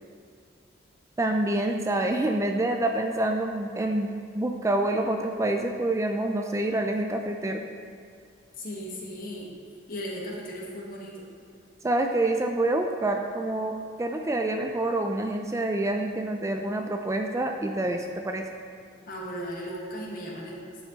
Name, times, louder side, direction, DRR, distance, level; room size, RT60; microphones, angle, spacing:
voice 1, 1.2-7.6 11.8-18.4, right 1 dB, 15° right, 4 dB, 0.4 m, -27 dB
voice 2, 8.6-9.5 9.9-11.3 19.1-20.5, equal, 50° left, -3 dB, 1.5 m, -36 dB
10.5 x 5.0 x 4.0 m, 2.3 s
head